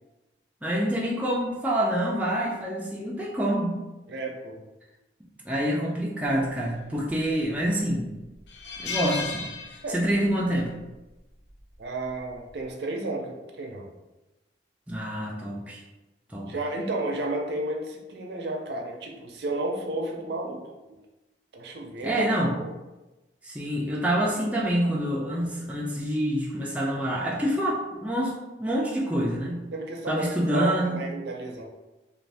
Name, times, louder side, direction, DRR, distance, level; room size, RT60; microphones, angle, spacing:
voice 1, 0.6-3.8 5.4-8.1 8.8-9.5 9.9-10.7 14.9-15.8 16.3-16.5 22.0-22.5 23.4-28.3 28.6-29.6 30.1-31.0, equal, 10° right, -4 dB, 0.3 m, -27 dB
voice 2, 4.1-4.6 9.8-10.0 11.8-13.9 16.4-21.0 21.5-22.3 22.6-22.7 29.7-31.6, right 2 dB, 65° right, 1 dB, 0.5 m, -32 dB
sound 1, 7.1-7.6 8.0-8.1 8.5-10.3 10.6-10.8 12.1-12.4, left 4 dB, 75° left, 0.5 m, -34 dB
2.5 x 2.5 x 3.3 m, 1.1 s
head